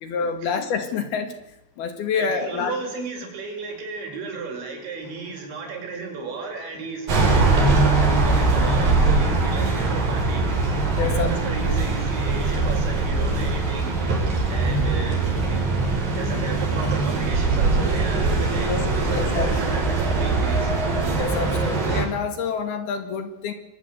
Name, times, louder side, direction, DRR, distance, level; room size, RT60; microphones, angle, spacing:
voice 1, 0.0-1.3 1.8-2.7 10.9-11.4 11.7-11.8 18.6-19.5 21.2-23.5, left 6 dB, 60° left, 9 dB, 3.6 m, -27 dB
voice 2, 2.1-10.4 11.1-14.0 14.5-15.2 15.5-15.7 16.2-20.7, right 4 dB, 65° right, 3 dB, 7.9 m, -34 dB
sound 1, 7.1-22.0, right 3 dB, 50° right, 6.9 m, -21 dB
24.0 x 19.5 x 8.1 m, 0.90 s
omnidirectional pair, 5.5 m